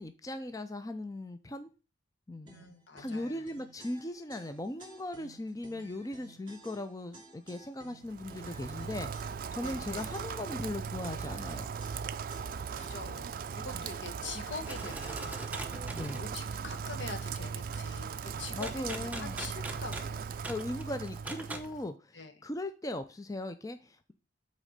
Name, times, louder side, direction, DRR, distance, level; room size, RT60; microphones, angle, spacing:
voice 1, 0.0-1.7 2.3-2.5 2.9-11.7 13.8-13.9 15.9-16.2 18.5-19.4 20.4-24.1, left 1 dB, 20° left, 9 dB, 0.5 m, -39 dB
voice 2, 2.5-3.5 9.6-10.1 12.4-15.9 16.1-20.3 22.1-22.5, left 4 dB, 80° left, 6 dB, 1.3 m, -45 dB
sound 1, 2.5-13.3, right 3 dB, 25° right, 2.4 m, -55 dB
Rain, 8.1-21.9, right 6 dB, 50° right, 0.3 m, -39 dB
sound 2, 14.6-16.3 18.6-21.7, right 2 dB, 10° right, 0.8 m, -42 dB
6.3 x 4.3 x 6.5 m, 0.33 s
head